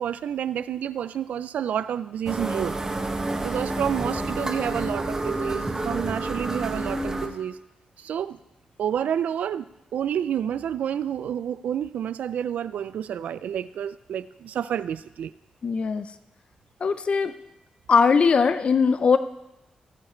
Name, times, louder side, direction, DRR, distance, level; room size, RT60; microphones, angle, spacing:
voice 1, 0.0-2.8 3.4-7.6 8.0-8.4 8.8-15.3, right 9 dB, 90° right, 15 dB, 0.4 m, -29 dB
sound 1, 2.3-7.3, right 2 dB, 20° right, 1.4 m, -29 dB
voice 2, 15.6-16.1 16.8-17.3 17.9-19.2, left 5 dB, 50° left, 12 dB, 0.5 m, -20 dB
18.5 x 7.3 x 4.4 m, 0.95 s
cardioid pair, 100°, 2 cm